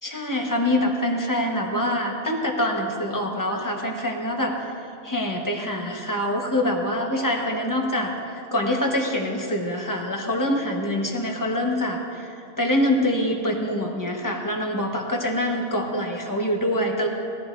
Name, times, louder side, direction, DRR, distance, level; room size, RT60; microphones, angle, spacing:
voice 1, 0.0-4.5 5.0-17.1, left 1 dB, 15° left, 0 dB, 1.3 m, -25 dB
20.5 x 14.0 x 2.7 m, 2.6 s
omnidirectional pair, 1.6 m